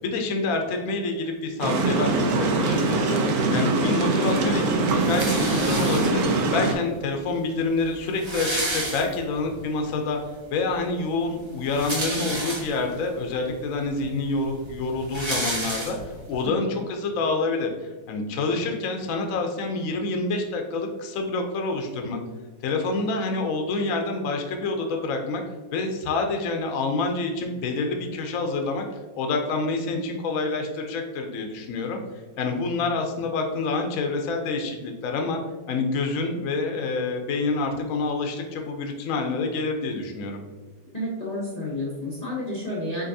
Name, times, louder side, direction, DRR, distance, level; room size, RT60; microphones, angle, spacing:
voice 1, 0.0-6.2 6.5-10.2 10.5-16.0 16.3-17.7 18.1-22.2 22.6-25.4 25.7-28.9 29.2-32.0 32.4-35.4 35.7-40.4, left 3 dB, 65° left, 3 dB, 0.9 m, -27 dB
sound 1, 1.6-6.8, right 3 dB, 70° right, 1.0 m, -23 dB
voice 2, 3.5-3.9 16.4-16.8 40.9-43.1, left 1 dB, 40° left, -4 dB, 0.6 m, -31 dB
sound 2, 5.0-6.4 7.3-7.4 7.6-7.7 7.9-9.5 10.0-10.1 11.5-13.0 13.6-13.7 14.0-16.3, right 1 dB, 40° right, 0.4 m, -31 dB
5.1 x 4.0 x 2.6 m, 1.3 s
omnidirectional pair, 1.9 m